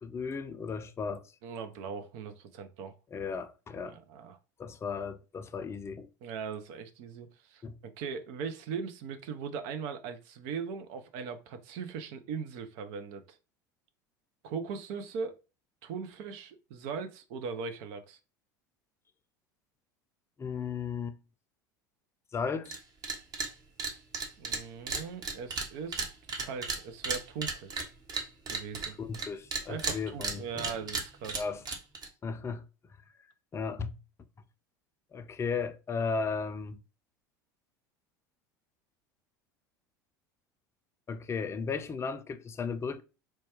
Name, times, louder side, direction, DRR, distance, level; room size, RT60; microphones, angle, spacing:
voice 1, 0.0-1.2 3.1-4.0 4.6-6.1 7.6-7.8 20.4-21.2 22.3-22.8 29.0-30.7 31.4-31.6 32.2-32.6 33.5-33.9 35.1-36.8 41.1-43.0, left 5 dB, 25° left, 0.5 m, -35 dB
voice 2, 1.4-2.9 3.8-4.4 6.2-7.6 8.0-13.4 14.4-15.3 15.8-18.2 24.4-26.1 26.4-27.8 28.5-29.0 29.7-31.4, right 5 dB, 60° right, 0.7 m, -39 dB
sound 1, 22.6-22.8 23.0-23.5 23.8-29.3 29.5-32.1, right 4 dB, 40° right, 1.0 m, -34 dB
4.4 x 2.3 x 3.0 m
hypercardioid pair, 80°, 11 cm